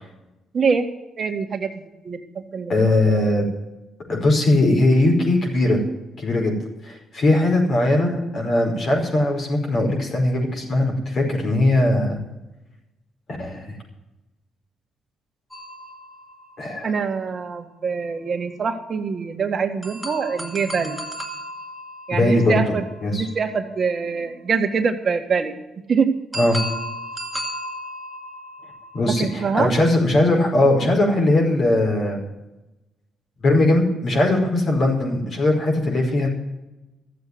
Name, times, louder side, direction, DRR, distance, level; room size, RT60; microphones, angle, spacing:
voice 1, 0.5-0.9 1.2-1.7 2.0-3.0 16.8-21.0 22.1-22.8 23.1-25.5 25.9-26.1 29.2-29.7, right 5 dB, 45° right, 5 dB, 1.8 m, -24 dB
voice 2, 2.7-3.5 4.1-5.8 6.2-6.5 6.8-12.2 13.4-13.7 16.6-16.9 22.1-22.6 23.0-23.3 26.4-26.6 28.9-32.2 33.4-36.3, left 1 dB, 55° left, 1 dB, 5.1 m, -19 dB
sound 1, 15.5-17.2 19.8-23.7 26.3-29.8, equal, 5° right, 2.3 m, -35 dB
14.0 x 7.7 x 9.7 m, 1.0 s
cardioid pair, 90°, 0 cm